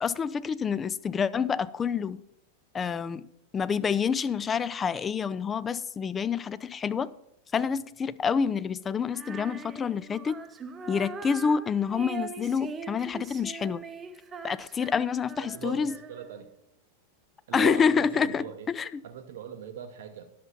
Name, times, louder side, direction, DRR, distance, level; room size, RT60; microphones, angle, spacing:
voice 1, 0.0-2.2 2.7-3.3 3.5-7.1 7.5-10.4 10.9-13.8 14.4-16.0 17.5-19.0, left 6 dB, 20° left, 0.4 m, -28 dB
Female singing, 9.1-16.5, right 5 dB, 20° right, 0.7 m, -42 dB
voice 2, 15.4-16.5 17.5-18.7 19.0-20.3, right 9 dB, 55° right, 0.7 m, -40 dB
10.0 x 6.8 x 5.7 m
figure-of-eight pair, 90°, 0 cm